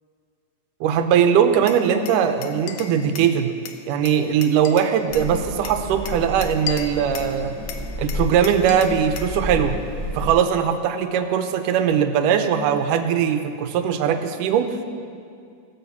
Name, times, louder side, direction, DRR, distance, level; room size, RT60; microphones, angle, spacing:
voice 1, 0.8-3.5 3.9-7.6 8.0-9.8 10.1-14.8, right 8 dB, 90° right, 8 dB, 2.3 m, -20 dB
Glass, 1.7-3.3 3.7-5.3 5.7-7.4 7.7-9.4, left 8 dB, 75° left, 2.1 m, -36 dB
sound 1, 5.1-10.3, left 1 dB, 15° left, 2.4 m, -31 dB
17.0 x 6.5 x 7.1 m, 2.4 s
omnidirectional pair, 3.6 m